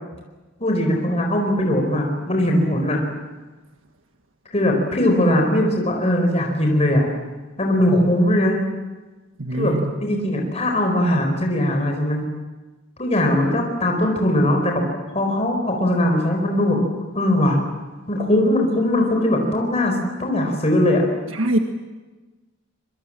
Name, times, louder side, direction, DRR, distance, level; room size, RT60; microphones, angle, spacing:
voice 1, 0.6-3.0 4.5-7.0 7.6-8.6 9.5-12.2 13.0-16.8 17.1-17.6 18.1-19.9 20.2-21.0, left 1 dB, 30° left, 2 dB, 4.5 m, -20 dB
voice 2, 9.4-10.0 21.3-21.6, right 1 dB, 75° right, 5 dB, 1.6 m, -22 dB
25.5 x 23.5 x 7.6 m, 1.2 s
head